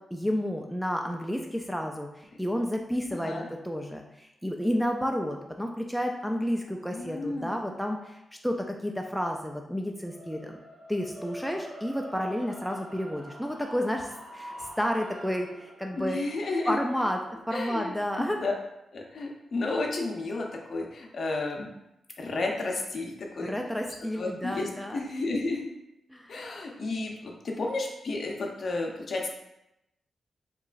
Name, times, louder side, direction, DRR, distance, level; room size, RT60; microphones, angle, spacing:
voice 1, 0.1-10.6 10.9-16.2 16.7-17.2 17.5-18.4 23.4-25.0 26.1-26.3, equal, ahead, 2 dB, 0.3 m, -31 dB
voice 2, 3.1-3.5 6.7-7.8 15.9-16.8 17.5-17.9 18.2-18.5 18.9-21.7 22.2-23.6 24.2-25.7 26.3-29.2, left 2 dB, 55° left, 1 dB, 0.6 m, -32 dB
sound 1, 10.0-20.2, equal, 75° right, 1.0 m, -47 dB
4.6 x 3.0 x 2.4 m, 0.86 s
wide cardioid pair, 130°, 0 cm